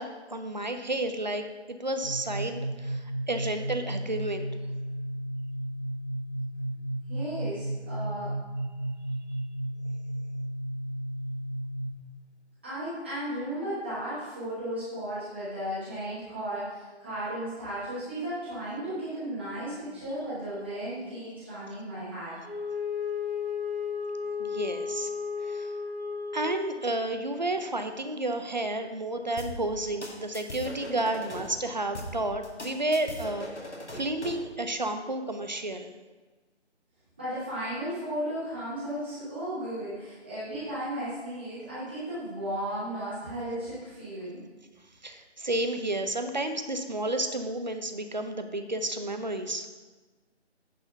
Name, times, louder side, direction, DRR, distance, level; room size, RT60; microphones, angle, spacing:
voice 1, 0.0-4.5 24.4-25.1 25.4-25.7 26.3-35.9 45.0-49.7, right 1 dB, 40° right, 7 dB, 0.6 m, -31 dB
sound 1, 2.0-11.9, right 1 dB, 20° left, 0.6 m, -34 dB
voice 2, 7.1-8.3 12.6-22.4 37.2-44.4, right 1 dB, 10° right, -12 dB, 1.0 m, -35 dB
Wind instrument woodwind instrument, 22.4-27.0, left 6 dB, 55° left, 1.6 m, -34 dB
sound 2, 29.4-31.5 31.9-34.5, equal, 70° left, 1.9 m, -39 dB
9.8 x 4.2 x 5.6 m, 1.3 s
figure-of-eight pair, 160°, 35 cm